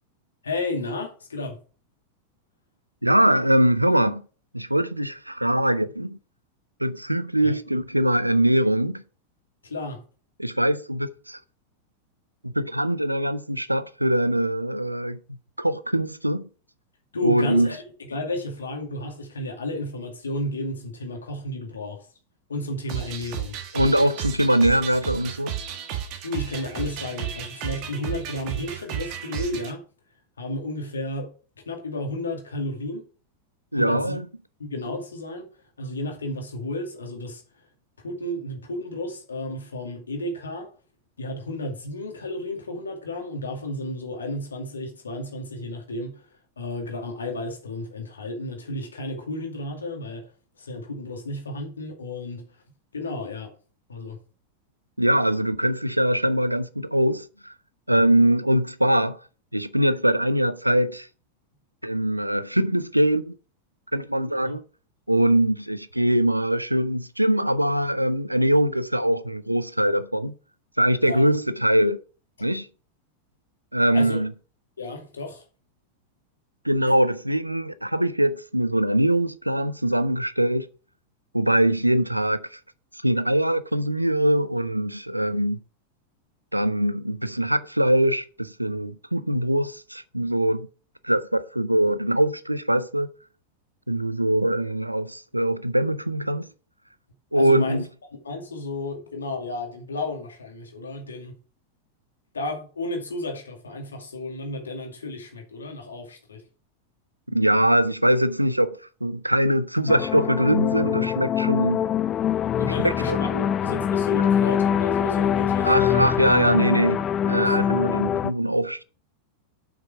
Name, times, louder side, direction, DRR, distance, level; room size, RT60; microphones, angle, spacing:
voice 1, 0.4-1.6 7.4-7.5 9.6-10.0 17.1-17.8 18.1-22.1 22.5-23.6 26.2-29.8 30.4-31.3 31.7-33.0 33.7-34.2 34.6-35.5 35.8-37.4 38.0-40.7 41.2-46.3 46.6-50.3 50.6-52.5 52.9-53.5 53.9-54.2 64.4-64.6 71.0-71.2 73.9-74.2 74.8-75.4 97.3-97.8 98.2-101.4 102.3-106.4 112.6-116.0 117.4-117.5, left 1 dB, 70° left, 2.2 m, -32 dB
voice 2, 3.0-4.2 4.5-6.2 6.8-9.0 10.4-11.4 12.4-15.2 15.6-16.5 17.2-17.7 23.7-25.5 33.7-34.3 55.0-57.5 57.9-59.2 59.5-61.1 61.8-63.3 63.9-64.6 65.1-70.3 70.8-72.0 72.4-72.7 73.7-74.3 76.6-80.7 81.3-82.6 83.0-85.6 86.5-90.7 91.0-93.1 93.9-96.5 97.3-97.8 107.3-111.8 112.8-113.5 115.6-118.8, right 1 dB, 85° right, 0.5 m, -22 dB
sound 1, 22.9-29.7, right 10 dB, 45° right, 1.5 m, -33 dB
sound 2, 109.9-118.3, left 9 dB, 30° left, 0.4 m, -24 dB
7.5 x 5.9 x 4.8 m
figure-of-eight pair, 90°, 0 cm